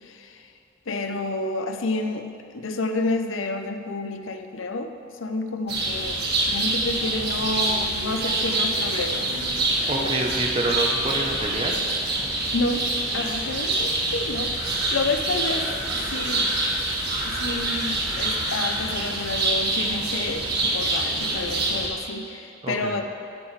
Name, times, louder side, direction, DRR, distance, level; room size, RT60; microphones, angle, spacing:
voice 1, 0.0-0.4 0.9-2.3 2.5-4.9 5.2-9.3 10.0-10.3 12.5-12.8 13.1-16.5 17.3-23.0, left 2 dB, 75° left, 6 dB, 0.7 m, -29 dB
sound 1, 5.7-21.9, right 2 dB, 55° right, 1.7 m, -26 dB
voice 2, 9.9-11.8 22.6-22.9, right 2 dB, 30° right, 1 dB, 0.9 m, -27 dB
15.5 x 8.1 x 3.3 m, 2.5 s
head